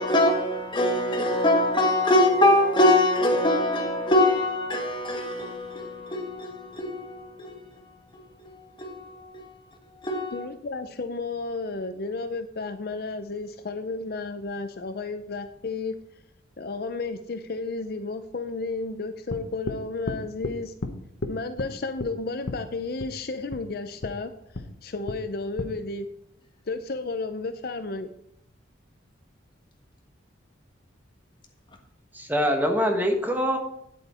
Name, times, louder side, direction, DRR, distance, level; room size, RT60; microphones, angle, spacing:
voice 1, 0.0-9.6 9.9-10.5, left 1 dB, 25° left, 1.4 m, -24 dB
voice 2, 10.3-15.9 16.6-20.7 21.3-24.3 24.8-26.1 26.7-28.1, left 3 dB, 50° left, 0.6 m, -32 dB
sound 1, 19.3-19.8 20.1-20.6 20.8-20.9 21.2-21.7 22.0-22.1 22.5-22.6 23.0-23.1 23.5-23.6 24.0-24.1 24.5-24.7 25.1-25.2 25.6-25.7, left 2 dB, 85° left, 1.1 m, -32 dB
voice 3, 32.1-33.6, equal, 10° right, 1.1 m, -24 dB
9.1 x 8.3 x 4.3 m
head